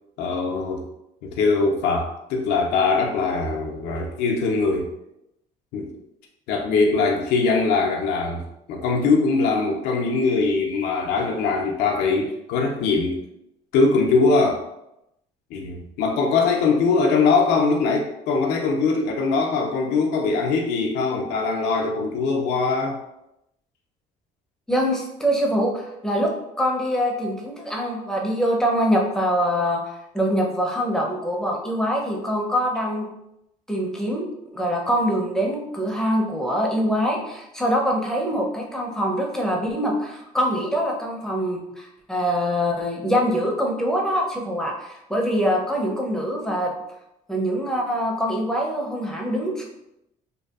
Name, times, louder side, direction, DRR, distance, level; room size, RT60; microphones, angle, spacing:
voice 1, 0.2-0.9 1.2-4.9 5.7-5.9 6.5-13.2 13.7-14.6 15.5-23.0, left 4 dB, 85° left, 0 dB, 0.4 m, -22 dB
voice 2, 24.7-33.1 33.7-34.3 34.5-46.7 47.3-49.6, equal, 5° left, -1 dB, 0.5 m, -24 dB
2.6 x 2.4 x 2.3 m, 0.85 s
cardioid pair, 110°, 17 cm